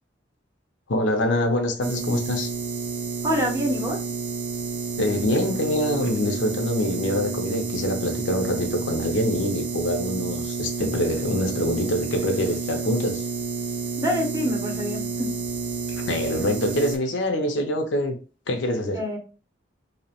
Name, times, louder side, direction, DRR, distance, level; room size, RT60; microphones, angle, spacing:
voice 1, 0.9-2.5 5.0-13.2 15.9-18.2 18.5-19.0, left 1 dB, 85° left, 0.5 m, -25 dB
sound 1, 1.8-17.0, right 4 dB, 85° right, 0.4 m, -30 dB
voice 2, 3.2-4.0 14.0-15.3 18.9-19.2, equal, 20° right, 0.6 m, -26 dB
2.7 x 2.0 x 2.8 m
head